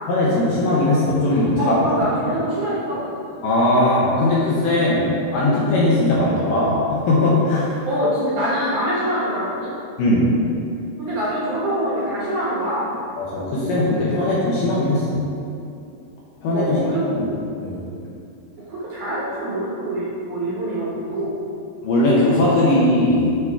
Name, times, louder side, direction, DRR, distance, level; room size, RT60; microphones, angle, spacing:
voice 1, 0.1-1.8 3.4-6.8 7.1-7.7 10.0-10.3 13.2-15.2 16.4-16.8 17.2-17.3 17.6-17.8 21.8-23.3, left 1 dB, 70° left, -7 dB, 2.3 m, -19 dB
voice 2, 1.6-3.1 7.9-9.7 11.0-12.9 16.5-17.3 18.6-21.3, equal, 65° right, -8 dB, 2.2 m, -24 dB
8.2 x 4.2 x 4.7 m, 2.5 s
omnidirectional pair, 4.8 m